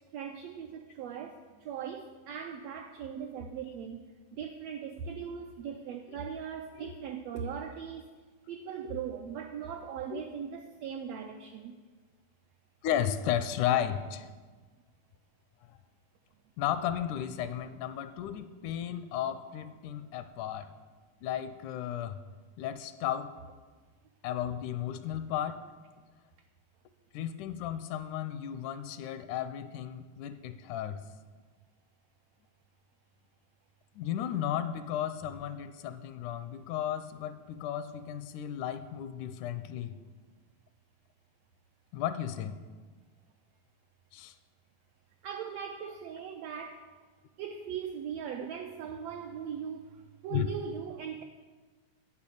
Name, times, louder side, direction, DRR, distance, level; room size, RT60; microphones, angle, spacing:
voice 1, 0.1-4.0 4.3-8.1 8.5-11.8 45.2-46.9 47.4-51.2, right 7 dB, 85° right, 5 dB, 1.4 m, -39 dB
voice 2, 12.8-14.3 15.7-15.8 16.6-20.7 21.2-22.2 22.6-23.3 24.2-25.7 27.1-31.0 34.0-40.0 41.9-42.6 44.1-44.4 50.3-50.5, left 10 dB, 80° left, 11 dB, 2.0 m, -34 dB
10.5 x 5.7 x 8.3 m, 1.4 s
omnidirectional pair, 3.6 m